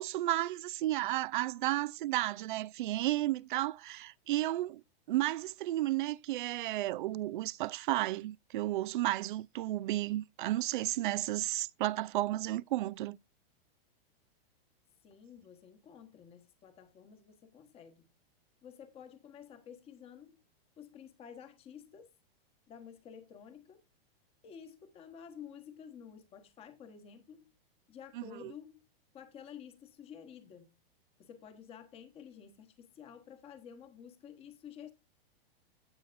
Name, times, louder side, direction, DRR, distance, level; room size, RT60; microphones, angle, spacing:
voice 1, 0.0-4.8 5.1-13.2 28.2-28.5, right 16 dB, 55° right, 0.5 m, -33 dB
voice 2, 15.0-18.1 18.6-20.4 20.8-22.1 22.7-23.8 24.4-27.5 27.9-28.8 29.1-30.7 31.2-34.9, left 8 dB, 20° left, 1.3 m, -51 dB
16.0 x 5.7 x 2.5 m
supercardioid pair, 160°, 30 cm